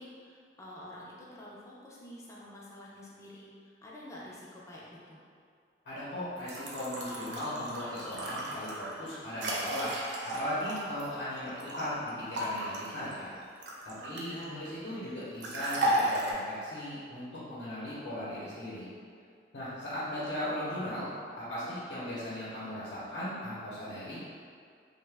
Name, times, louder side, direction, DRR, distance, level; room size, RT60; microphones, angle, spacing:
voice 1, 0.0-5.2 14.0-14.6, left 1 dB, 15° left, -5 dB, 0.4 m, -48 dB
voice 2, 5.9-9.9 10.2-13.3 13.8-18.9 19.5-21.1 21.4-24.2, left 1 dB, 75° left, -10 dB, 0.7 m, -37 dB
sound 1, 6.4-11.9 12.3-14.4 15.4-16.3, right 1 dB, 80° right, 0.5 m, -34 dB
2.8 x 2.1 x 3.3 m, 2.2 s
head